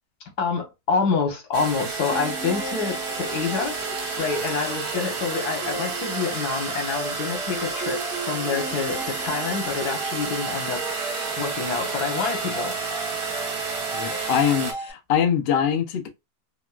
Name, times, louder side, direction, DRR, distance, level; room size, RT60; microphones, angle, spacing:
voice 1, 0.4-3.8 4.2-10.8 11.4-12.8, left 5 dB, 85° left, 1.6 m, -27 dB
sound 1, 1.5-14.7, right 4 dB, 45° right, 0.7 m, -31 dB
sound 2, 2.1-14.9, right 1 dB, 40° left, 1.6 m, -36 dB
voice 2, 13.9-16.1, left 8 dB, 65° left, 0.6 m, -23 dB
3.7 x 2.3 x 2.3 m
omnidirectional pair, 1.7 m